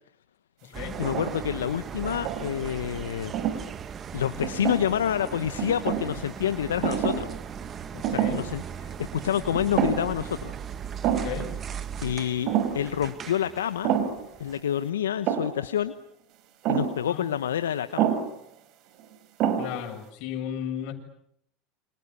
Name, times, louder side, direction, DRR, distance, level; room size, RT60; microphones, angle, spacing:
voice 1, 0.6-3.4 4.1-7.3 8.1-10.5 12.0-13.9 14.4-15.9 16.7-18.1, left 10 dB, 85° left, 12 dB, 1.1 m, -28 dB
sound 1, 0.7-14.6, right 8 dB, 35° right, 2.0 m, -38 dB
sound 2, 0.9-1.5 2.0-2.8 3.3-3.6 4.4-5.1 5.6-6.1 6.8-7.4 7.6-7.7 8.0-8.5 8.9-9.0 9.5-10.2 10.5-10.6 11.0-11.4 12.5-12.9 13.8-14.3 15.3-15.6 16.6-17.0 18.0-18.4 19.0-19.1 19.4-19.9, right 9 dB, 55° right, 4.4 m, -27 dB
voice 2, 7.9-8.4 11.2-11.5 17.1-17.3 19.6-20.9, left 9 dB, 60° left, 4 dB, 7.3 m, -34 dB
29.0 x 27.0 x 6.9 m, 0.70 s
hypercardioid pair, 90°, 0 cm